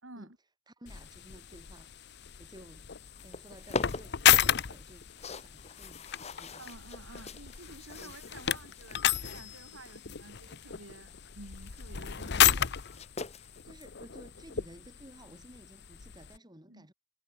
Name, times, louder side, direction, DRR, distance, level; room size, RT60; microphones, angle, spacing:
voice 1, 0.7-1.9 2.4-2.9 3.2-6.7 8.0-8.1 12.6-12.7 13.6-16.9, right 1 dB, 20° right, 6.5 m, -54 dB
sound 1, 0.9-16.4, left 10 dB, 60° left, 0.8 m, -32 dB
sound 2, 3.0-13.6, left 3 dB, 35° left, 1.2 m, -44 dB
voice 2, 6.6-12.5 16.7-16.9, right 2 dB, 85° right, 5.2 m, -51 dB
head